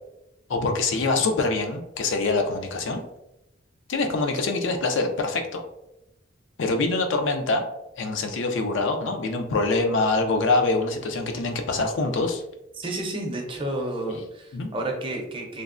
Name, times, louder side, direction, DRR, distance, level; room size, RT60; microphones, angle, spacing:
voice 1, 0.5-3.0 3.9-5.6 6.6-7.6 8.0-12.4 14.5-14.7, left 3 dB, 70° left, 5 dB, 0.4 m, -24 dB
voice 2, 12.7-15.6, right 1 dB, 25° right, 1 dB, 0.5 m, -31 dB
3.3 x 2.0 x 2.4 m, 0.86 s
head